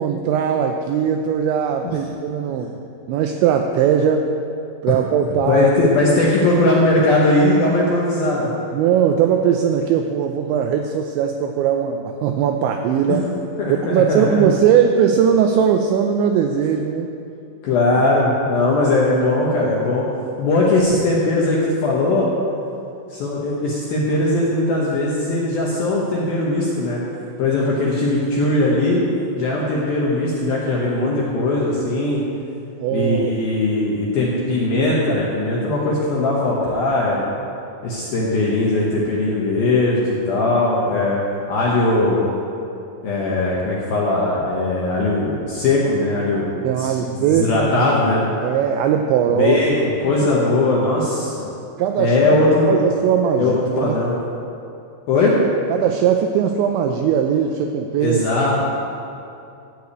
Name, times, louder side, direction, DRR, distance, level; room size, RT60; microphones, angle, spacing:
voice 1, 0.0-2.8 3.1-4.3 4.8-5.7 8.7-13.3 13.7-17.1 32.8-33.3 46.6-47.9 48.4-49.6 50.2-50.3 51.8-52.4 52.7-54.0 55.7-58.2, right 8 dB, 90° right, 4 dB, 2.6 m, -19 dB
voice 2, 5.5-8.5 13.1-13.2 13.6-14.4 17.6-20.0 20.4-22.3 23.1-27.0 27.4-29.0 29.4-32.2 32.9-37.3 37.8-41.2 41.5-42.3 43.0-48.2 49.3-49.7 50.0-51.4 52.0-52.8 53.4-54.2 55.1-55.4 58.0-58.6, left 2 dB, 75° left, -5 dB, 2.2 m, -19 dB
14.5 x 4.9 x 8.2 m, 2.6 s
omnidirectional pair, 5.8 m